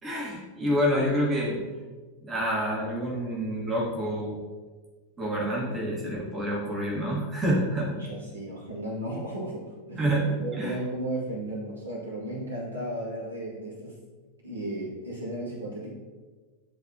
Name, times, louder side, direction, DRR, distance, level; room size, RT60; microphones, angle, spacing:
voice 1, 0.0-1.6 2.2-4.4 5.2-8.0 10.0-10.8, equal, 20° right, -3 dB, 1.6 m, -28 dB
voice 2, 8.0-10.0 10.4-14.0 14.4-15.9, right 1 dB, 75° right, -6 dB, 1.9 m, -34 dB
10.5 x 3.5 x 2.8 m, 1.3 s
figure-of-eight pair, 90°, 0 cm